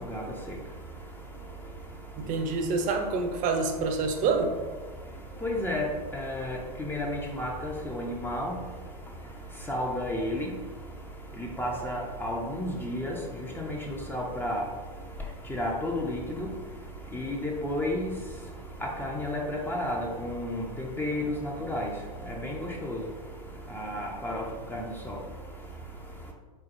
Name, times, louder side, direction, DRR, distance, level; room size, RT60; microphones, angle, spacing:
voice 1, 2.2-4.5, right 4 dB, 40° right, 5 dB, 0.7 m, -27 dB
voice 2, 5.4-5.8 6.1-8.5 9.7-10.5 11.4-13.2 13.6-14.6 15.5-16.2 17.1-18.1 18.8-21.9 22.3-23.0 23.7-24.4 24.7-25.2, left 1 dB, 10° left, -1 dB, 0.6 m, -32 dB
4.4 x 3.9 x 2.6 m, 1.4 s
hypercardioid pair, 95°, 20 cm